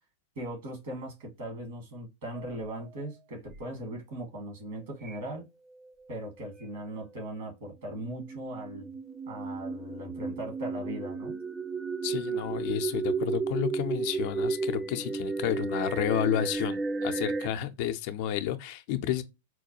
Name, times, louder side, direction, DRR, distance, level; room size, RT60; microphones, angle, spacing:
voice 1, 0.3-5.4 6.1-8.9 9.3-11.4, right 1 dB, 60° right, 1.6 m, -39 dB
sound 1, 2.4-2.9 3.5-3.6 5.0-5.4 5.7-6.6 8.0-17.5, right 4 dB, 15° right, 0.3 m, -33 dB
voice 2, 12.0-19.2, left 10 dB, 50° left, 0.5 m, -31 dB
4.4 x 2.2 x 2.7 m
figure-of-eight pair, 95°, 0 cm